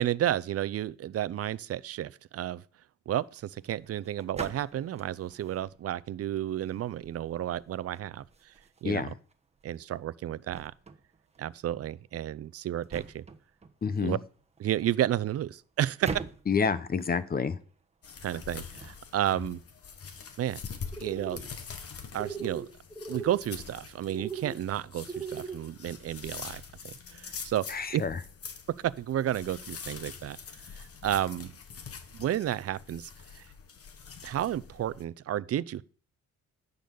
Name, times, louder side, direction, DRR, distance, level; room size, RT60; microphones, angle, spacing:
voice 1, 0.0-2.6 3.1-8.5 8.8-9.1 9.6-10.7 11.4-13.2 14.0-14.2 14.6-16.1 18.2-19.6 20.4-20.6 21.0-21.5 22.1-22.7 23.1-27.6 27.9-28.0 28.8-30.4 30.7-31.5 32.1-33.5 34.2-35.8, right 12 dB, 50° right, 0.6 m, -32 dB
sound 1, 3.2-19.4, right 4 dB, 20° right, 1.1 m, -46 dB
voice 2, 13.8-14.2 16.5-17.6 27.7-28.2, left 5 dB, 30° left, 0.8 m, -28 dB
sound 2, 18.0-35.0, left 6 dB, 50° left, 1.4 m, -45 dB
sound 3, 20.9-21.4 22.2-22.7 22.9-23.4 24.1-24.5 25.1-25.6, right 5 dB, 5° right, 1.7 m, -37 dB
10.5 x 4.0 x 6.9 m
cardioid pair, 90°, 30 cm